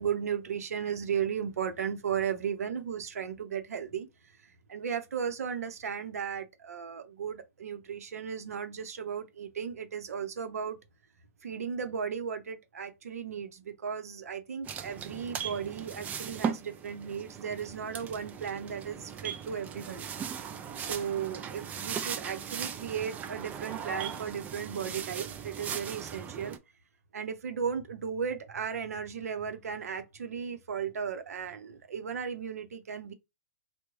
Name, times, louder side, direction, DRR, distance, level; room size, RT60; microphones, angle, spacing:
voice 1, 0.0-4.1 4.7-10.8 11.4-20.0 20.8-26.6 27.1-33.1, right 7 dB, 75° right, 0.7 m, -35 dB
sound 1, 14.6-26.6, right 7 dB, 20° right, 0.4 m, -38 dB
3.0 x 2.2 x 3.5 m
hypercardioid pair, 120°, 8 cm